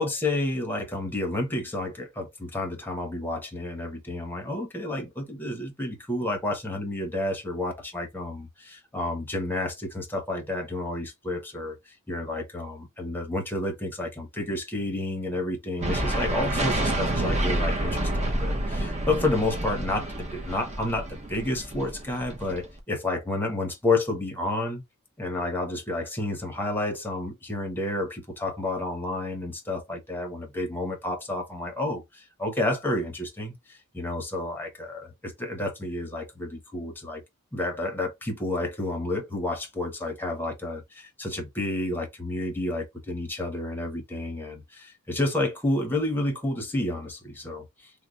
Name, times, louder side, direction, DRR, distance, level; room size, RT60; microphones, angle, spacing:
voice 1, 0.0-11.8 12.1-24.8 25.2-37.2 37.5-47.7, left 2 dB, 10° left, 0.9 m, -30 dB
sound 1, 15.8-22.8, right 1 dB, 30° right, 0.8 m, -29 dB
3.1 x 2.1 x 3.8 m
head